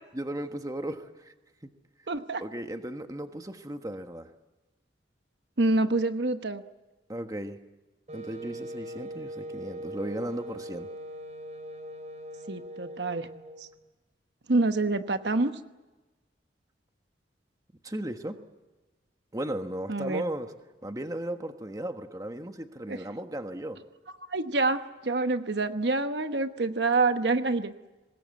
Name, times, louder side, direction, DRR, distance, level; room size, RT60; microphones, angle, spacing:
voice 1, 0.1-1.3 2.4-4.3 7.1-7.6 8.1-10.9 17.8-18.4 19.3-20.5 20.8-23.8, right 1 dB, 20° right, 7 dB, 1.4 m, -36 dB
voice 2, 2.1-2.4 5.6-6.6 12.5-13.3 14.5-15.5 19.9-20.2 22.9-23.0 24.3-24.8 25.0-27.7, right 3 dB, 70° right, 9 dB, 1.1 m, -26 dB
Wind instrument woodwind instrument, 8.1-13.7, right 1 dB, 40° right, 2.9 m, -41 dB
25.5 x 20.5 x 8.4 m, 1.1 s
head